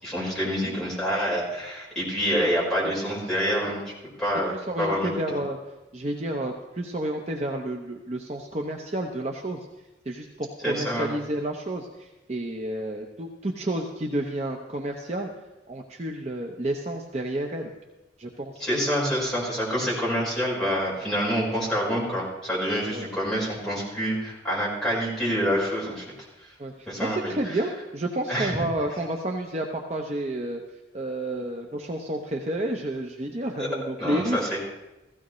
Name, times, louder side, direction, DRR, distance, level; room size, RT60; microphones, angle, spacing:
voice 1, 0.0-3.8 4.2-4.5 4.8-5.1 10.6-11.1 18.6-26.0 26.9-27.3 28.3-28.6 33.6-33.7 34.0-34.7, equal, 5° left, -7 dB, 4.7 m, -27 dB
voice 2, 4.5-5.6 5.9-9.6 10.1-15.3 15.7-17.7 18.2-18.7 22.9-23.1 26.6-30.6 30.9-34.4, right 1 dB, 35° right, 2 dB, 0.8 m, -30 dB
15.5 x 15.5 x 3.1 m, 0.98 s
head